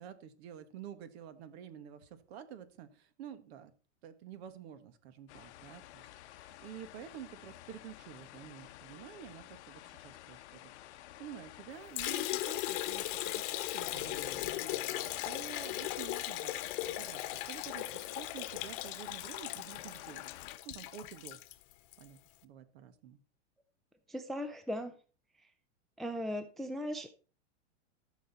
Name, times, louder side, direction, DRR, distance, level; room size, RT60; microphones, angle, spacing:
voice 1, 0.0-3.7 4.0-20.3 20.6-21.4 22.0-23.2, right 9 dB, 60° right, 11 dB, 1.7 m, -50 dB
sound 1, 5.3-20.6, left 14 dB, 70° left, 0.9 m, -52 dB
Liquid, 12.0-22.1, left 16 dB, 45° left, 1.1 m, -38 dB
voice 2, 24.1-24.9 26.0-27.1, equal, ahead, 10 dB, 0.4 m, -38 dB
14.0 x 6.6 x 4.2 m, 0.36 s
supercardioid pair, 140°, 36 cm